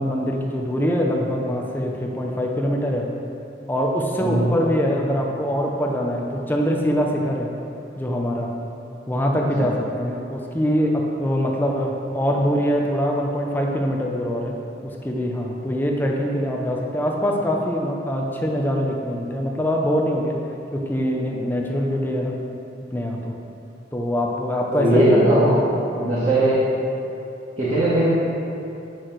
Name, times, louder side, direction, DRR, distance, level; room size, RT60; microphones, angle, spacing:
voice 1, 0.0-3.1 3.7-7.5 8.0-8.5 9.1-14.5 14.8-20.4 20.7-22.4 22.9-23.3 23.9-25.2 25.4-25.6 25.9-26.3, equal, 10° left, 0 dB, 0.8 m, -23 dB
voice 2, 24.7-25.5 26.0-26.6 27.6-28.1, right 1 dB, 40° right, -11 dB, 2.0 m, -18 dB
10.0 x 6.1 x 6.4 m, 2.9 s
head